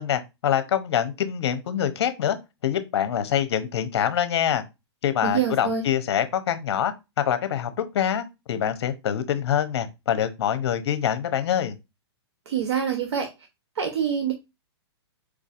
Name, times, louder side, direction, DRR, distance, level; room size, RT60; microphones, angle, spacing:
voice 1, 0.0-2.4 2.6-4.6 5.0-6.9 7.3-11.7, left 9 dB, 70° left, 0.7 m, -25 dB
voice 2, 5.2-5.8 12.5-13.3 13.8-14.3, right 7 dB, 75° right, 0.8 m, -25 dB
4.7 x 2.6 x 2.4 m
hypercardioid pair, 135°, 14 cm